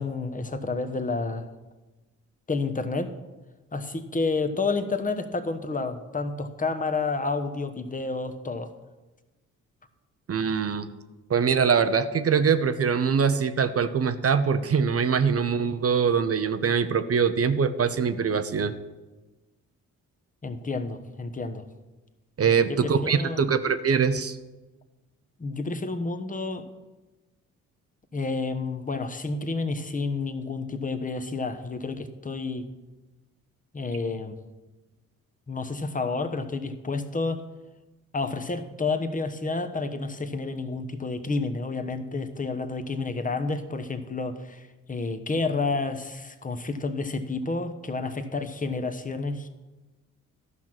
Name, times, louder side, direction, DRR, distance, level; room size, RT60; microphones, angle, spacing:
voice 1, 0.0-1.5 2.5-3.1 3.7-8.7 20.4-21.7 22.5-23.4 25.4-26.7 28.1-32.6 33.7-34.4 35.5-37.4 38.1-49.5, left 3 dB, 20° left, 8 dB, 1.1 m, -30 dB
voice 2, 10.3-10.9 11.3-18.7 22.4-24.4, right 6 dB, 35° right, 11 dB, 0.8 m, -23 dB
12.5 x 5.9 x 6.0 m, 1.1 s
hypercardioid pair, 45°, 39 cm